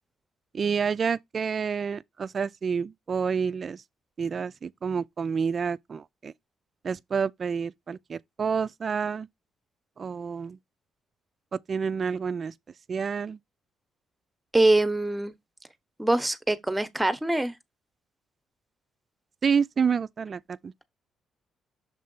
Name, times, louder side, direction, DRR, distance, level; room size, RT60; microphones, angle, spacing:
voice 1, 0.5-3.8 4.2-6.3 6.8-9.3 10.0-10.6 11.5-12.5 12.9-13.4 19.4-20.7, right 6 dB, 45° right, 0.4 m, -29 dB
voice 2, 14.5-15.3 16.0-17.5, right 2 dB, 10° right, 0.9 m, -23 dB
6.6 x 3.2 x 5.4 m
cardioid pair, 90°, 0 cm